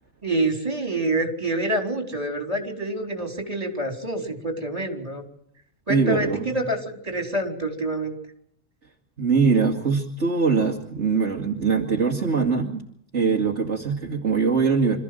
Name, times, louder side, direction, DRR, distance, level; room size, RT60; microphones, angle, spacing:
voice 1, 0.2-5.2 5.9-8.1, right 2 dB, 30° right, 4 dB, 4.3 m, -27 dB
voice 2, 5.9-6.5 9.2-12.8 13.1-15.0, right 5 dB, 60° right, 1 dB, 2.4 m, -22 dB
27.0 x 14.5 x 7.8 m, 0.69 s
omnidirectional pair, 1.4 m